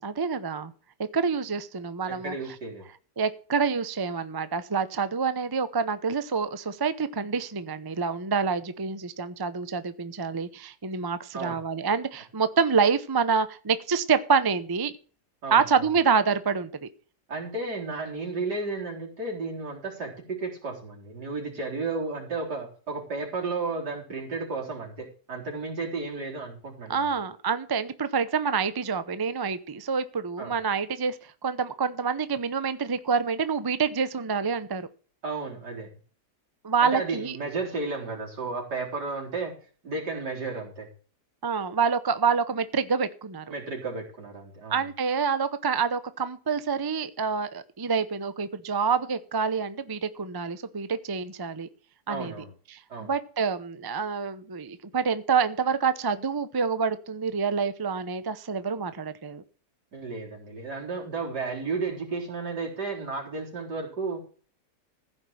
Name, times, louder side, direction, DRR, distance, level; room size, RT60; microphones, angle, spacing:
voice 1, 0.0-0.7 1.1-2.3 3.2-14.9 15.5-16.9 26.9-34.9 36.6-37.4 41.4-43.4 44.7-51.7 52.1-52.3 52.7-59.4, right 5 dB, 30° right, 13 dB, 0.4 m, -27 dB
voice 2, 2.1-2.9 11.3-11.6 15.4-15.9 17.3-20.1 20.4-27.1 30.4-30.5 35.2-35.9 36.8-39.5 39.8-40.9 43.5-44.9 52.1-52.5 52.9-53.1 59.9-64.3, right 3 dB, 75° right, 0 dB, 4.3 m, -33 dB
15.5 x 5.4 x 7.6 m, 0.40 s
omnidirectional pair, 1.8 m